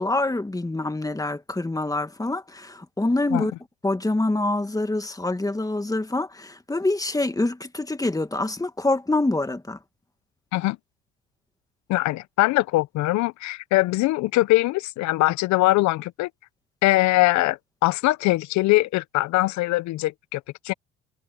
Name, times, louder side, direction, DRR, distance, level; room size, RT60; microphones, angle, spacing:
voice 1, 0.0-3.5 3.8-9.8, left 2 dB, 10° left, 2.3 m, -25 dB
voice 2, 11.9-16.3 16.8-20.7, left 19 dB, 65° left, 1.2 m, -22 dB
hypercardioid pair, 60°, 30 cm